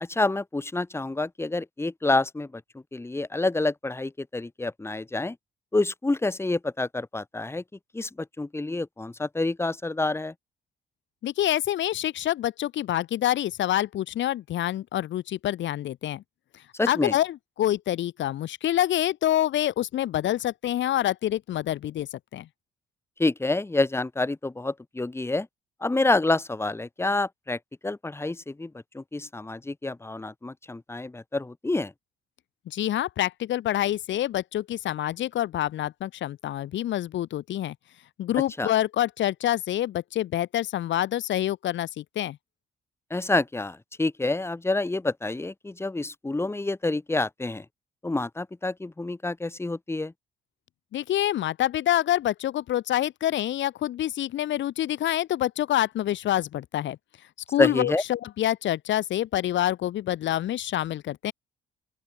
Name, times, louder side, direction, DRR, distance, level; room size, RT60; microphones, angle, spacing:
voice 1, 0.0-2.6 2.9-5.4 5.7-7.6 7.9-10.3 16.7-17.1 23.2-25.5 25.8-31.9 38.6-38.7 43.1-47.6 48.0-50.1 57.6-58.0, left 2 dB, 10° left, 1.2 m, -28 dB
voice 2, 11.2-16.2 16.9-22.5 32.7-37.7 38.2-42.4 50.9-57.0 57.5-61.3, left 12 dB, 70° left, 1.0 m, -27 dB
open air
cardioid pair, 90°, 20 cm